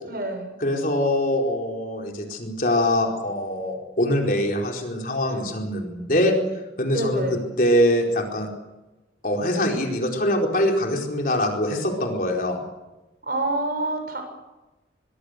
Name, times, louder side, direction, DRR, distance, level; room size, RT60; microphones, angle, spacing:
voice 1, 0.0-0.5 5.3-5.4 6.9-7.4 13.2-14.2, right 2 dB, 50° right, 5 dB, 7.1 m, -27 dB
voice 2, 0.6-6.3 6.8-8.5 9.2-12.6, left 1 dB, 45° left, 2 dB, 4.4 m, -23 dB
25.5 x 22.0 x 6.6 m, 1.0 s
head